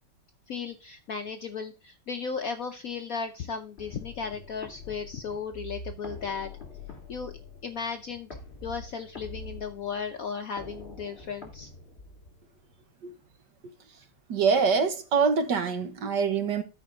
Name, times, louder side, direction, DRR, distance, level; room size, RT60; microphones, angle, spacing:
voice 1, 0.5-6.5 7.1-7.3 7.6-8.3 8.6-11.7, left 5 dB, 60° left, 0.9 m, -35 dB
sound 1, 3.8-12.7, left 3 dB, 30° left, 2.8 m, -45 dB
voice 2, 14.3-16.6, right 5 dB, 60° right, 1.6 m, -24 dB
13.0 x 5.2 x 3.8 m
omnidirectional pair, 2.3 m